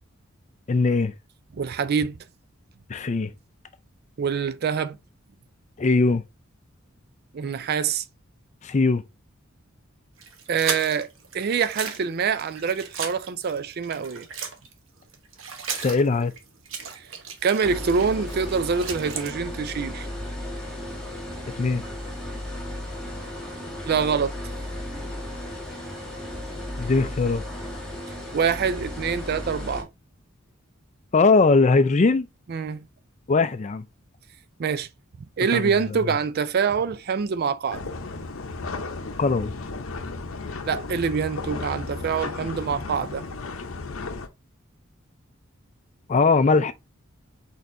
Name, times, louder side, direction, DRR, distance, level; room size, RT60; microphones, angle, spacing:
voice 1, 0.7-1.1 2.9-3.3 5.8-6.2 8.6-9.0 15.7-16.3 21.5-21.8 26.8-27.4 31.1-32.3 33.3-33.8 35.5-36.0 39.2-39.5 46.1-46.7, left 3 dB, 35° left, 0.4 m, -20 dB
voice 2, 1.6-2.1 4.2-5.0 7.3-8.0 10.5-14.3 17.4-20.1 23.9-24.3 28.3-29.9 32.5-32.8 34.6-34.9 35.4-37.8 40.7-43.2, right 6 dB, 50° right, 0.4 m, -25 dB
sound 1, 10.2-14.7 15.0-19.3, right 6 dB, 70° right, 0.9 m, -36 dB
sound 2, 17.6-29.8, left 1 dB, ahead, 1.4 m, -35 dB
sound 3, 37.7-44.3, left 3 dB, 80° left, 0.7 m, -34 dB
4.7 x 4.2 x 2.6 m
head